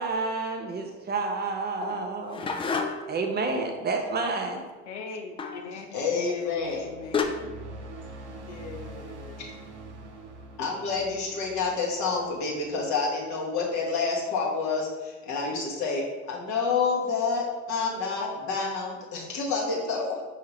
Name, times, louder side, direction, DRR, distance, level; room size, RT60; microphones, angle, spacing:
voice 1, 0.0-2.4 3.1-4.6, right 3 dB, 30° right, 4 dB, 0.6 m, -29 dB
sound 1, 1.8-3.2 5.4-5.7 6.7-6.8 7.1-7.3, left 5 dB, 15° left, 0.3 m, -30 dB
voice 2, 4.9-7.6 8.5-9.5, left 4 dB, 85° left, 3 dB, 0.5 m, -41 dB
voice 3, 5.9-6.9 10.6-20.2, left 4 dB, 55° left, -3 dB, 1.3 m, -28 dB
sound 2, 6.5-13.1, right 2 dB, 85° right, 0.6 m, -44 dB
5.6 x 2.8 x 3.0 m, 1.2 s
hypercardioid pair, 60°, 35 cm